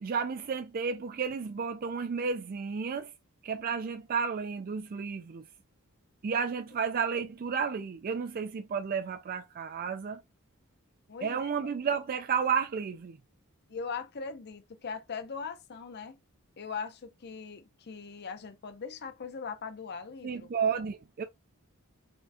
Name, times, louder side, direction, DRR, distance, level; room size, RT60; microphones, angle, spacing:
voice 1, 0.0-3.1 3.4-5.4 6.2-10.2 11.2-13.2 20.2-21.2, right 6 dB, 40° right, 0.4 m, -32 dB
voice 2, 11.1-11.7 13.7-16.2 16.6-20.5, left 5 dB, 50° left, 0.6 m, -40 dB
4.3 x 3.5 x 2.7 m
head